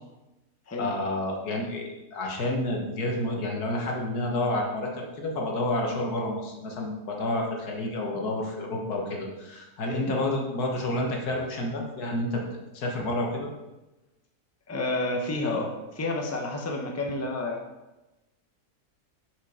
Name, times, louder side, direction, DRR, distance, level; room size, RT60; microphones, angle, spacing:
voice 1, 0.8-12.4 12.7-13.5, left 1 dB, 80° left, 0 dB, 1.8 m, -29 dB
voice 2, 14.7-17.6, left 2 dB, 15° left, 1 dB, 0.8 m, -30 dB
7.5 x 5.1 x 5.1 m, 1.0 s
omnidirectional pair, 1.6 m